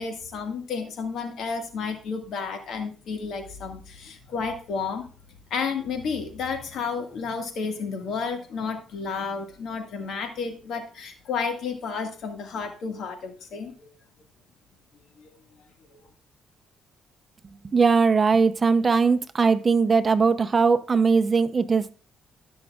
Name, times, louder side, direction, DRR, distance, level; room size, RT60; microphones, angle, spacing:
voice 1, 0.0-5.1 5.5-13.9 15.2-15.3 15.9-16.0, left 5 dB, 70° left, 1.9 m, -31 dB
voice 2, 17.7-21.9, right 5 dB, 35° right, 0.7 m, -20 dB
17.0 x 6.3 x 2.4 m
cardioid pair, 90°, 0 cm